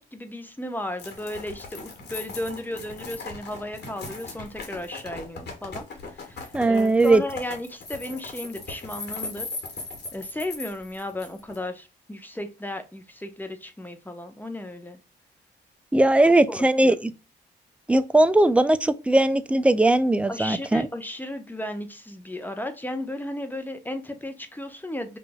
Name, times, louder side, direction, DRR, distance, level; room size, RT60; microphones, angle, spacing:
voice 1, 0.0-5.8 6.1-9.5 10.1-15.0 16.5-17.0 20.3-25.2, left 1 dB, 10° left, 0.8 m, -34 dB
sound 1, 1.0-11.6, left 3 dB, 65° left, 1.4 m, -38 dB
voice 2, 6.5-7.2 15.9-17.1 17.9-20.9, right 2 dB, 5° right, 0.4 m, -19 dB
5.0 x 2.5 x 2.2 m
cardioid pair, 70°, 19 cm